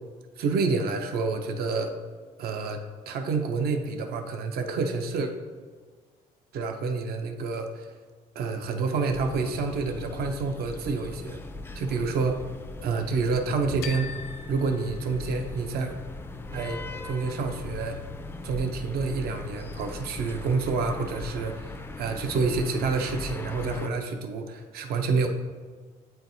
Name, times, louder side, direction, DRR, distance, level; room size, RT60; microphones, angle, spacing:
voice 1, 0.4-1.9 2.4-2.8 3.1-5.3 6.5-7.9 8.3-11.4 11.7-12.5 12.8-14.2 14.5-15.9 16.5-18.0 18.4-25.3, right 4 dB, 65° right, 5 dB, 0.7 m, -28 dB
sound 1, 9.1-23.9, left 2 dB, 15° left, 0.3 m, -39 dB
sound 2, 13.8-15.7, left 7 dB, 80° left, 0.5 m, -42 dB
8.5 x 4.5 x 2.6 m, 1.5 s
cardioid pair, 110°, 17 cm